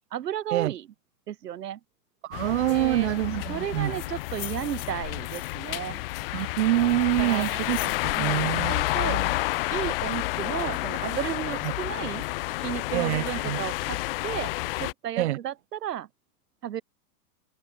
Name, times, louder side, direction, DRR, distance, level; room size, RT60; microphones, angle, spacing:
voice 1, 0.1-0.9 1.3-1.8 2.7-3.1 3.5-6.0 7.2-7.5 8.1-8.3 8.7-9.2 9.7-12.3 12.6-14.5 14.8-16.1 16.6-16.8, right 11 dB, 70° right, 5.1 m, -33 dB
voice 2, 2.2-3.9 6.3-7.8 8.0-8.7 9.0-9.3 12.9-13.6 15.2-15.4, right 15 dB, 45° right, 1.2 m, -26 dB
sound 1, 2.3-14.9, left 19 dB, 35° left, 1.5 m, -30 dB
sound 2, 3.7-5.8 6.4-8.1, left 13 dB, 55° left, 5.5 m, -43 dB
supercardioid pair, 170°, 49 cm